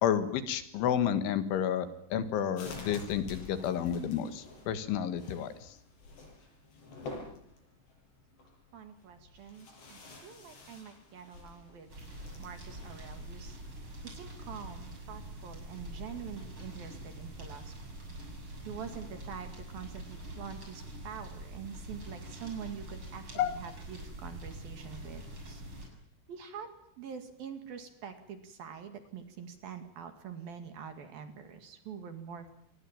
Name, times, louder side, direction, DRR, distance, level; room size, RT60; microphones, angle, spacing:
voice 1, 0.0-5.7 23.4-23.6, left 9 dB, 80° left, 10 dB, 4.0 m, -31 dB
sound 1, 2.6-13.2, left 3 dB, 60° left, 9.0 m, -49 dB
voice 2, 8.7-11.9 12.4-13.6 14.0-17.8 18.7-25.6 26.3-32.5, right 7 dB, 55° right, 7 dB, 3.6 m, -45 dB
sound 2, 11.9-25.9, right 1 dB, 25° right, 7.7 m, -45 dB
27.5 x 20.5 x 9.0 m, 0.69 s
omnidirectional pair, 5.5 m